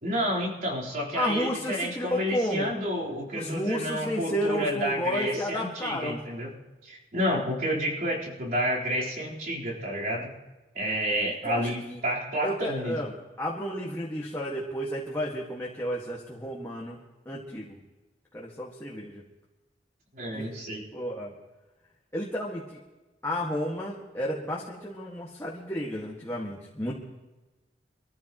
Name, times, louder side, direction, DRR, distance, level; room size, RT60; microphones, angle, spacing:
voice 1, 0.0-6.5 6.8-10.3 10.7-13.0 20.1-20.8, equal, 50° right, -4 dB, 4.0 m, -30 dB
voice 2, 1.1-2.7 3.3-6.2 11.5-12.0 12.4-13.1 13.4-17.0 17.3-17.8 18.3-19.1 20.4-20.5 20.9-21.3 22.1-22.8 23.2-26.9, equal, 15° left, -4 dB, 1.8 m, -32 dB
24.5 x 14.0 x 3.0 m, 1.1 s
head